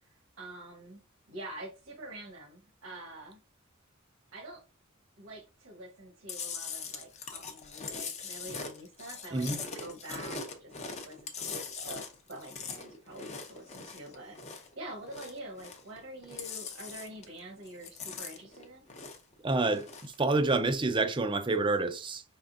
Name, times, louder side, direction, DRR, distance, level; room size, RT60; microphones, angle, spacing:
voice 1, 0.4-1.0 1.3-3.4 4.3-4.6 5.2-9.5 9.7-18.8, right 1 dB, 65° right, 1.2 m, -46 dB
Chewing mastication, 6.3-14.7 15.0-16.0 16.2-17.4 17.7-19.3 19.7-20.2, left 5 dB, 35° left, 0.7 m, -41 dB
voice 2, 19.4-22.2, right 3 dB, 25° right, 0.5 m, -28 dB
5.3 x 3.6 x 2.6 m
head